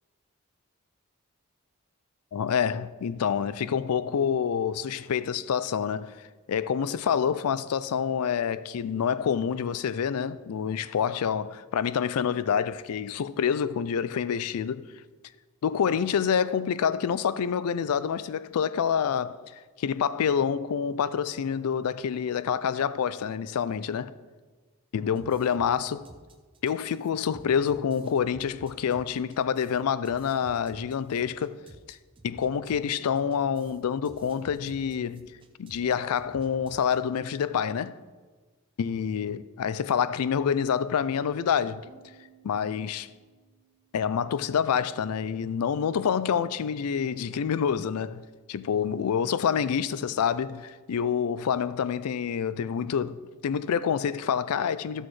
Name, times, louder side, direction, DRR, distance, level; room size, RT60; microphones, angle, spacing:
voice 1, 2.3-6.1 6.5-14.9 15.6-19.4 19.8-24.1 24.9-26.1 26.6-31.6 31.9-32.0 32.2-35.2 35.6-38.0 38.8-41.8 42.4-43.1 43.9-48.2 48.5-55.1, left 7 dB, 85° left, 0.4 m, -27 dB
sound 1, 25.1-37.4, right 2 dB, 20° right, 0.5 m, -52 dB
Piano, 41.9-45.3, right 6 dB, 50° right, 1.2 m, -60 dB
14.0 x 6.3 x 3.2 m
head